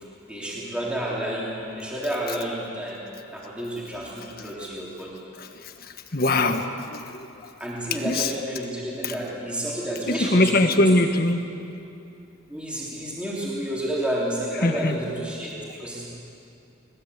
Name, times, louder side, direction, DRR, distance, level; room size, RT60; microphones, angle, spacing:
voice 1, 0.2-3.0 3.3-5.2 7.6-10.9 12.5-16.1, right 1 dB, 5° right, -6 dB, 3.6 m, -30 dB
voice 2, 5.4-7.3 8.0-8.3 9.0-9.1 10.1-11.4 14.6-15.0, left 2 dB, 45° left, 7 dB, 1.4 m, -22 dB
21.0 x 20.0 x 8.1 m, 2.7 s
head